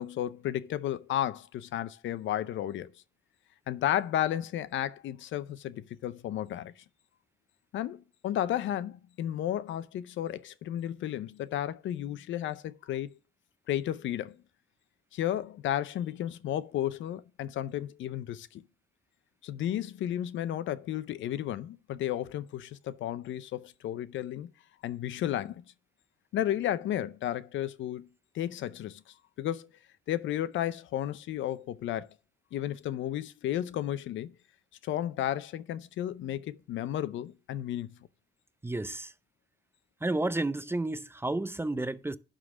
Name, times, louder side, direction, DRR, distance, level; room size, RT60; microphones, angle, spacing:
voice 1, 0.0-2.9 3.7-6.7 7.7-13.1 13.7-14.4 15.1-18.6 19.4-24.5 24.8-25.6 26.3-28.1 28.3-29.0 29.4-29.7 30.1-32.1 32.5-34.3 34.8-38.0, left 12 dB, 75° left, 0.6 m, -33 dB
voice 2, 38.6-39.1 40.0-42.2, right 2 dB, 10° right, 0.5 m, -31 dB
11.0 x 3.8 x 6.3 m
cardioid pair, 90°, 20 cm